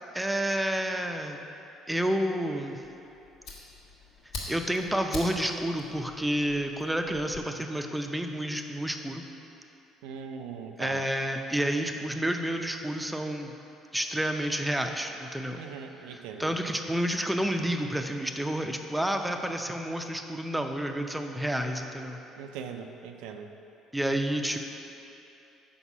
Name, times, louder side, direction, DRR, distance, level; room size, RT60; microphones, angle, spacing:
voice 1, 0.1-1.4 1.9-2.8 4.5-9.2 10.8-13.5 13.9-15.6 16.0-22.2 23.9-24.6, right 1 dB, 5° right, 4 dB, 0.5 m, -30 dB
Fire, 2.8-7.4, left 2 dB, 75° left, 1.2 m, -43 dB
voice 2, 10.0-11.0 15.5-16.5 22.4-23.5, right 6 dB, 80° right, 5 dB, 0.4 m, -40 dB
5.3 x 4.1 x 5.9 m, 2.9 s
supercardioid pair, 75°, 0 cm